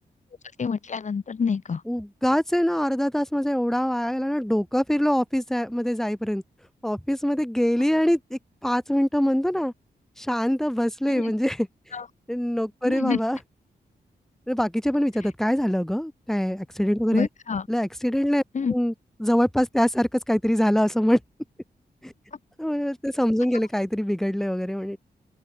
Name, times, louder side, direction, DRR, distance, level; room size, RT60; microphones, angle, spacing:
voice 1, 0.6-1.8 11.1-11.3 11.9-12.1 12.8-13.2 17.1-17.7 18.5-18.7, left 5 dB, 45° left, 2.2 m, -27 dB
voice 2, 1.9-6.4 6.8-9.7 10.2-11.7 12.3-13.4 14.5-17.3 17.7-18.4 18.7-18.9 19.2-21.2 22.0-22.1 22.6-25.0, equal, ahead, 3.0 m, -24 dB
open air
wide cardioid pair, 145°, 17 cm